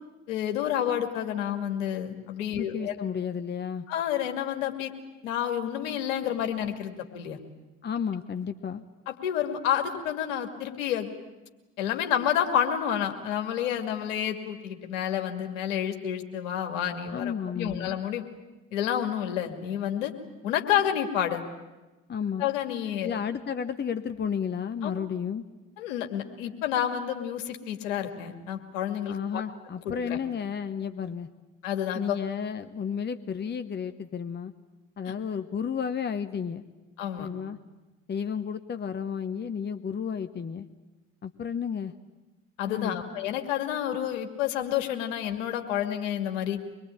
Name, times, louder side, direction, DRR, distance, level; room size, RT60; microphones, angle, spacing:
voice 1, 0.3-2.9 3.9-4.9 5.2-7.4 9.1-11.1 11.8-18.2 18.7-20.1 20.4-21.4 22.4-23.2 24.8-25.0 25.8-29.4 29.9-30.2 31.6-32.2 35.1-35.2 37.0-37.3 42.6-46.6, left 10 dB, 70° left, 5 dB, 2.4 m, -29 dB
voice 2, 2.6-3.9 7.8-8.8 17.1-18.0 22.1-22.5 23.0-25.4 29.1-31.3 31.9-34.5 35.0-36.6 37.2-37.6 38.1-40.7 41.2-41.9 42.7-43.0, left 7 dB, 25° left, 10 dB, 1.1 m, -32 dB
24.5 x 22.5 x 9.0 m, 1.1 s
figure-of-eight pair, 60°, 39 cm